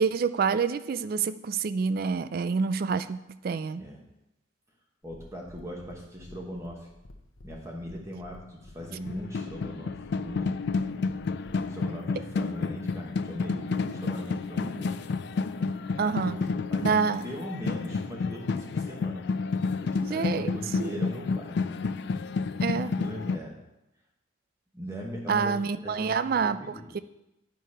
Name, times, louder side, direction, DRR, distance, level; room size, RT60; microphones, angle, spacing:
voice 1, 0.0-3.8 16.0-16.4 16.8-17.2 20.0-21.1 22.6-22.9 25.3-27.0, right 5 dB, 45° right, 14 dB, 0.3 m, -28 dB
sound 1, 5.0-11.7, left 1 dB, 85° left, 0.9 m, -51 dB
voice 2, 5.0-6.9 7.4-11.0 11.7-15.3 16.0-19.3 19.8-21.6 23.0-23.6 24.7-26.8, equal, 15° right, -1 dB, 1.2 m, -40 dB
sound 2, 8.8-23.4, left 4 dB, 55° left, 0.3 m, -30 dB
9.1 x 4.9 x 5.5 m, 0.92 s
head